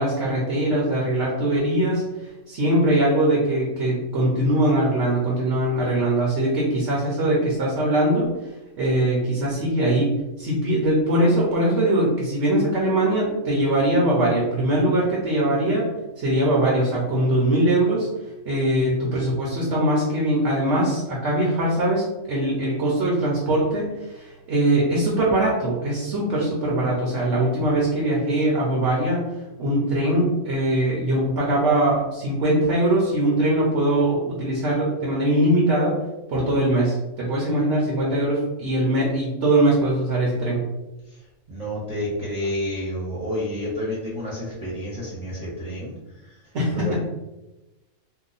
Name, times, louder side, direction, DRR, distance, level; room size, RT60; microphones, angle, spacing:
voice 1, 0.0-8.3 8.8-10.1 10.4-15.9 16.2-18.1 18.5-29.3 29.6-35.9 36.3-40.6 46.5-47.0, right 1 dB, 55° right, -4 dB, 1.0 m, -21 dB
voice 2, 41.5-45.9 46.7-47.0, left 1 dB, 30° right, -9 dB, 0.9 m, -29 dB
2.9 x 2.2 x 3.9 m, 1.0 s
omnidirectional pair, 1.5 m